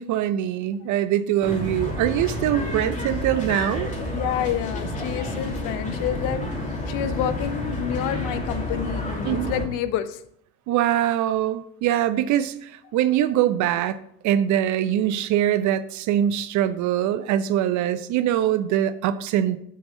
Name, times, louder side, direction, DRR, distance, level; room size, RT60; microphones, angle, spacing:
voice 1, 0.0-3.9 9.2-9.5 10.7-14.0 14.2-19.6, right 11 dB, 45° right, 13 dB, 0.7 m, -23 dB
sound 1, 1.4-9.6, left 1 dB, 20° left, 3.1 m, -29 dB
voice 2, 4.1-6.4 6.9-10.2, left 10 dB, 50° left, 12 dB, 0.9 m, -28 dB
7.1 x 6.1 x 6.3 m, 0.69 s
hypercardioid pair, 70°, 40 cm